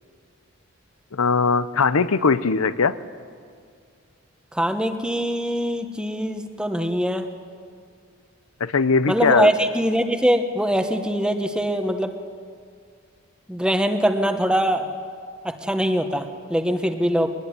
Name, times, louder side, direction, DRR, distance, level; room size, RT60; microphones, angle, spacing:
voice 1, 1.1-3.0 8.6-9.5, left 4 dB, 90° left, 15 dB, 0.8 m, -20 dB
voice 2, 4.5-7.3 9.1-12.1 13.5-14.9 15.4-17.3, equal, 5° right, 7 dB, 1.2 m, -23 dB
23.0 x 20.5 x 9.8 m, 2.2 s
head